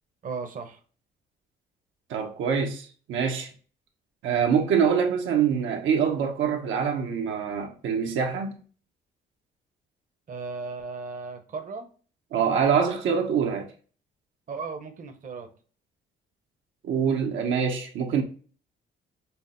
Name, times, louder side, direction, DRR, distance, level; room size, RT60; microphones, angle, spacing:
voice 1, 0.2-0.8 10.3-11.9 14.5-15.5, right 4 dB, 45° right, 0.7 m, -36 dB
voice 2, 2.1-3.5 4.2-8.6 12.3-13.7 16.8-18.2, right 7 dB, 80° right, 0.7 m, -25 dB
5.6 x 2.0 x 2.4 m
cardioid pair, 90°, 20 cm